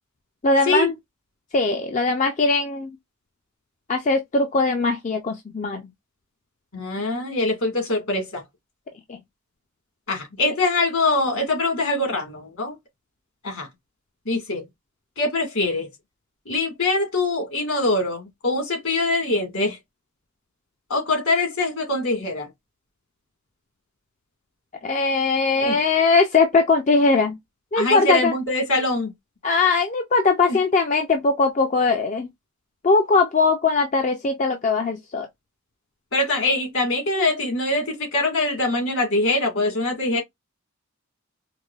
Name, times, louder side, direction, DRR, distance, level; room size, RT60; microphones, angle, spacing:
voice 1, 0.4-0.9 1.5-2.9 3.9-5.9 9.1-9.2 24.8-27.4 27.7-28.3 29.4-32.3 32.8-35.3, left 3 dB, 35° left, 0.4 m, -20 dB
voice 2, 6.7-8.4 10.1-12.8 13.4-13.7 14.3-14.7 15.2-15.9 16.5-19.8 20.9-22.5 25.6-25.8 27.8-29.1 30.5-30.6 36.1-40.2, left 2 dB, 65° left, 1.8 m, -23 dB
4.7 x 2.1 x 2.3 m
head